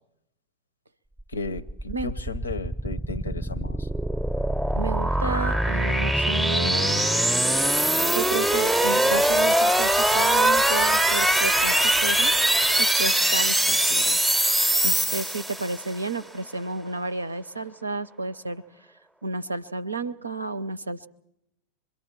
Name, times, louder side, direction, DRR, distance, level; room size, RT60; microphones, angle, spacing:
voice 1, 1.3-3.9, left 3 dB, 75° left, 0.7 m, -34 dB
sound 1, 1.3-15.9, right 1 dB, 5° right, 0.7 m, -22 dB
voice 2, 4.7-7.1 8.1-12.3 12.8-14.2 14.8-18.6 19.2-21.1, right 3 dB, 80° right, 0.7 m, -32 dB
26.5 x 22.5 x 4.5 m
figure-of-eight pair, 90°, 0 cm